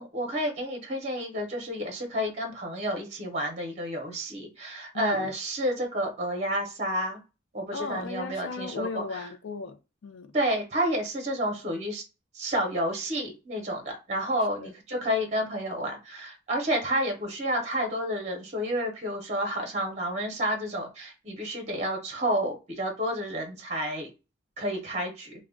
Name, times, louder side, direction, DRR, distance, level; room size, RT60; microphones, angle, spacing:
voice 1, 0.0-7.2 7.5-9.0 10.3-12.0 12.3-24.1 24.6-25.3, equal, 35° right, 0.7 m, -30 dB
voice 2, 4.9-5.4 7.7-10.3 14.6-14.7, left 4 dB, 85° left, 0.5 m, -36 dB
2.3 x 2.1 x 3.5 m
head